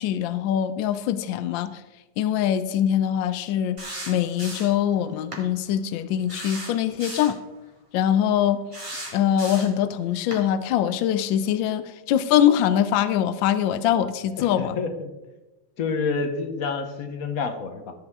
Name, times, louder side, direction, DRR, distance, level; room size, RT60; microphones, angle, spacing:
voice 1, 0.0-1.8 2.2-3.8 4.1-7.4 7.9-8.6 9.1-14.8, left 10 dB, 80° left, 12 dB, 1.3 m, -23 dB
sound 1, 3.8-4.8 5.3-5.5 6.3-7.4 8.7-9.8 10.3-10.4, right 1 dB, 15° right, 2.1 m, -36 dB
voice 2, 14.4-15.1 15.8-17.9, left 4 dB, 55° left, 6 dB, 1.3 m, -28 dB
13.5 x 8.1 x 3.6 m, 1.1 s
omnidirectional pair, 2.2 m